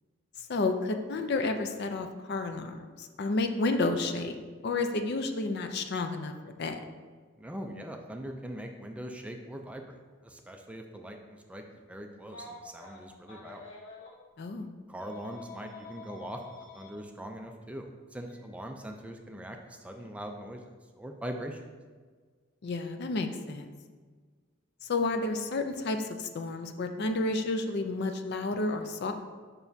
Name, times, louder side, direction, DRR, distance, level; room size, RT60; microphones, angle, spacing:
voice 1, 0.5-4.4 4.6-6.8 14.4-14.7 22.6-23.7 24.9-29.1, left 3 dB, 55° left, 7 dB, 0.5 m, -31 dB
voice 2, 7.4-13.6 14.9-16.4 16.7-20.6 21.0-21.6, right 1 dB, 5° right, 3 dB, 0.3 m, -41 dB
Telephone, 12.2-14.1 15.0-16.9 18.2-18.4 19.9-20.1, left 3 dB, 70° left, 1.0 m, -47 dB
7.0 x 5.6 x 2.7 m, 1.5 s
head